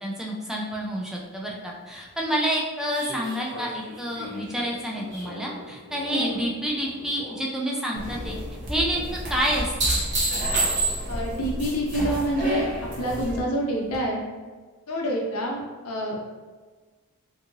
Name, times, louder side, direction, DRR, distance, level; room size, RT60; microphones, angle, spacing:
voice 1, 0.0-8.4 8.7-9.9, equal, ahead, -3 dB, 0.3 m, -29 dB
sound 1, 2.9-6.4 6.7-7.4 9.4-11.3 13.9-14.0, right 2 dB, 55° right, 1.0 m, -29 dB
voice 2, 6.1-6.4 11.1-14.2 14.9-16.3, equal, 80° left, -1 dB, 0.6 m, -27 dB
sound 2, 7.9-13.4, equal, 35° right, 0.7 m, -32 dB
2.7 x 2.7 x 2.6 m, 1.4 s
head